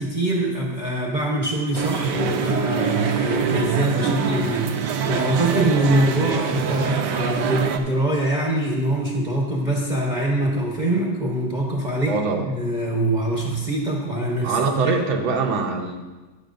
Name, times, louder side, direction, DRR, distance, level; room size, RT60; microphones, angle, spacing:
voice 1, 0.0-12.2 12.5-14.9, right 1 dB, 30° right, -2 dB, 1.0 m, -23 dB
sound 1, 1.7-7.8, right 7 dB, 70° right, 1.2 m, -24 dB
voice 2, 12.0-12.5 14.4-16.0, right 4 dB, 90° right, 2 dB, 1.8 m, -23 dB
18.5 x 6.3 x 2.6 m, 1.2 s
omnidirectional pair, 2.1 m